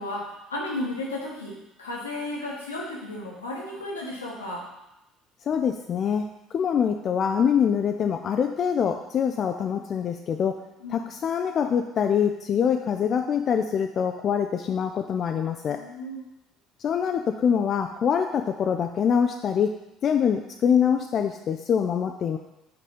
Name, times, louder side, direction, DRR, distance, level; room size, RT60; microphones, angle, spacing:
voice 1, 0.0-4.6 10.8-11.1 15.7-16.2, left 1 dB, 90° left, -3 dB, 1.2 m, -34 dB
voice 2, 5.5-6.3 6.5-10.6 10.9-15.8 16.8-19.7 20.0-22.4, left 7 dB, 50° left, 5 dB, 0.4 m, -24 dB
5.2 x 4.1 x 5.2 m, 0.91 s
hypercardioid pair, 60°, 0 cm